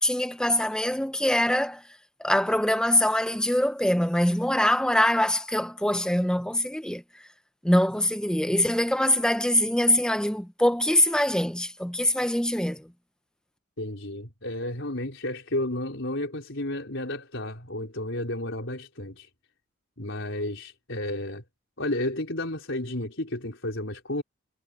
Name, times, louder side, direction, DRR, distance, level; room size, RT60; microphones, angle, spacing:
voice 1, 0.0-1.8 2.2-7.2 7.6-12.9, left 1 dB, 5° left, 0.8 m, -24 dB
voice 2, 13.8-19.3 20.0-21.4 21.8-24.2, left 1 dB, 65° left, 4.4 m, -32 dB
head